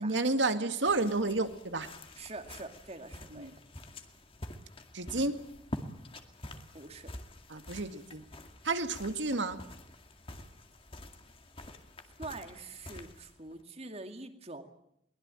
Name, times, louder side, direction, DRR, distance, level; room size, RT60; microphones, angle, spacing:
voice 1, 0.0-1.9 3.3-3.5 4.9-5.3 7.5-8.2 8.6-9.6, right 3 dB, 80° right, 8 dB, 2.1 m, -30 dB
sound 1, 0.9-13.6, left 1 dB, 30° left, 2.2 m, -47 dB
voice 2, 2.1-3.5 6.7-7.1 12.2-14.6, right 2 dB, 35° right, 7 dB, 2.3 m, -45 dB
22.5 x 20.5 x 9.0 m, 0.76 s
head